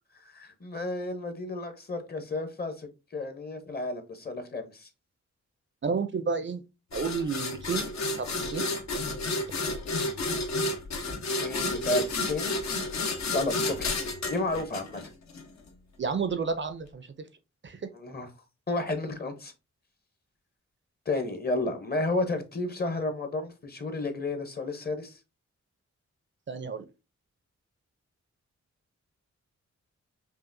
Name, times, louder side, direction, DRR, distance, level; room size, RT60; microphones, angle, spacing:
voice 1, 0.3-4.9 11.4-12.6 13.3-14.0 14.3-15.0 17.9-18.3 18.7-19.5 21.1-25.2, left 2 dB, 35° left, 0.8 m, -32 dB
voice 2, 5.8-6.6 6.9-7.9 8.1-8.7 16.0-17.1 17.6-17.9 26.5-26.9, right 5 dB, 40° right, 0.5 m, -31 dB
sound 1, 6.9-15.4, left 2 dB, 70° left, 0.9 m, -31 dB
5.5 x 2.4 x 2.6 m
wide cardioid pair, 110°, 29 cm